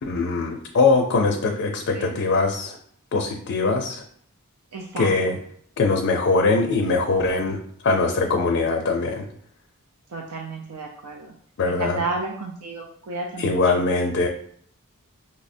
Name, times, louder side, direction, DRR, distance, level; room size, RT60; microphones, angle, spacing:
voice 1, 0.0-2.8 3.1-4.0 5.0-5.4 5.8-9.3 11.6-12.0 13.4-14.3, left 3 dB, 55° left, 2 dB, 0.4 m, -22 dB
voice 2, 4.7-5.1 10.1-11.3 11.7-13.7, right 3 dB, 90° right, 0 dB, 0.4 m, -32 dB
5.2 x 2.1 x 2.5 m, 0.62 s
head